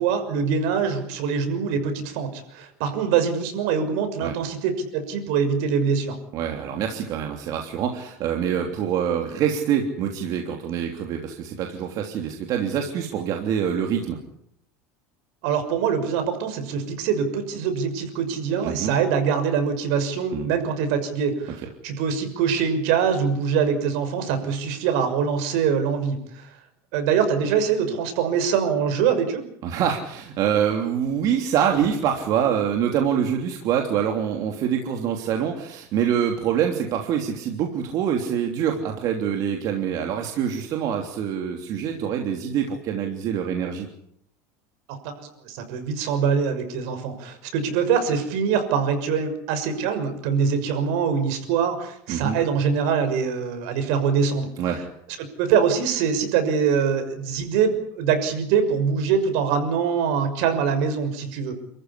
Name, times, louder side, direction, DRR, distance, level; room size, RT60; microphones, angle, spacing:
voice 1, 0.0-6.2 15.4-26.5 26.9-29.4 45.0-54.5 55.4-61.5, right 6 dB, 70° right, 7 dB, 6.2 m, -24 dB
voice 2, 6.3-14.2 18.6-18.9 20.3-20.5 29.6-43.9 52.1-52.4 54.6-54.8, right 8 dB, 50° right, 3 dB, 3.3 m, -25 dB
29.5 x 14.5 x 10.0 m, 0.71 s
supercardioid pair, 140°, 8 cm